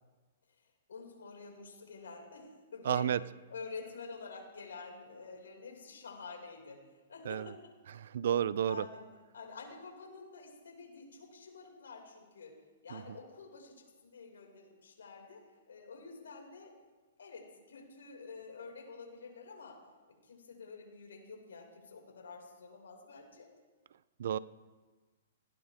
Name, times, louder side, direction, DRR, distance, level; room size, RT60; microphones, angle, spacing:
voice 1, 0.5-3.1 3.5-7.6 8.6-9.0 9.3-12.6 12.8-16.7 17.2-19.8 20.2-23.5, left 4 dB, 85° left, 0 dB, 6.1 m, -48 dB
voice 2, 2.8-3.2 7.3-7.5 8.0-8.8 12.9-13.0 24.2-24.4, right 9 dB, 65° right, 18 dB, 0.6 m, -31 dB
19.5 x 18.5 x 3.8 m, 1.3 s
hypercardioid pair, 140°, 0 cm